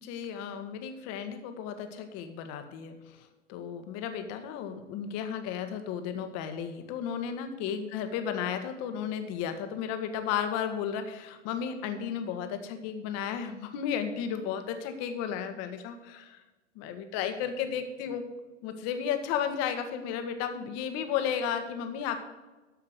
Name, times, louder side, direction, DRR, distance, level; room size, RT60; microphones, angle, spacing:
voice 1, 0.0-16.4 16.7-18.3 18.6-22.2, left 8 dB, 45° left, 7 dB, 1.6 m, -34 dB
13.5 x 5.7 x 6.6 m, 1.2 s
figure-of-eight pair, 95°, 36 cm